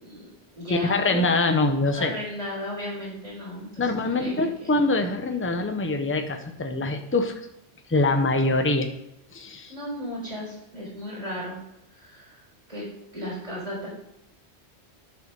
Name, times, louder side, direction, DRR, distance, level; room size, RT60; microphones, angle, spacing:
voice 1, 0.0-1.2 1.9-3.9 4.1-4.7 9.7-11.6 11.9-12.4 12.7-12.9 13.1-13.9, left 1 dB, 35° right, -6 dB, 4.1 m, -35 dB
voice 2, 0.7-2.1 3.8-7.5 7.9-8.9 9.3-9.7, left 2 dB, 15° left, 5 dB, 0.7 m, -24 dB
11.0 x 4.5 x 5.4 m, 0.84 s
omnidirectional pair, 1.1 m